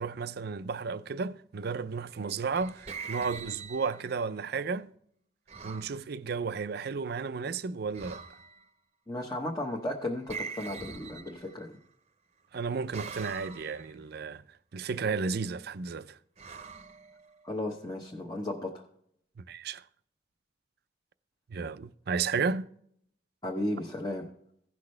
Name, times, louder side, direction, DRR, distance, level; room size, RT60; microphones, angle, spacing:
voice 1, 0.0-4.9 5.6-8.2 12.5-14.4 14.7-16.2 19.5-19.8 21.5-22.7, right 5 dB, 55° right, 0.4 m, -33 dB
sound 1, 2.2-4.2 5.5-6.0 7.9-8.7 10.3-11.8 12.9-13.9 16.4-17.6, right 5 dB, 35° right, 0.8 m, -43 dB
voice 2, 9.1-11.7 17.4-18.8 23.4-24.3, left 1 dB, 20° left, 1.0 m, -34 dB
16.5 x 6.0 x 3.2 m
head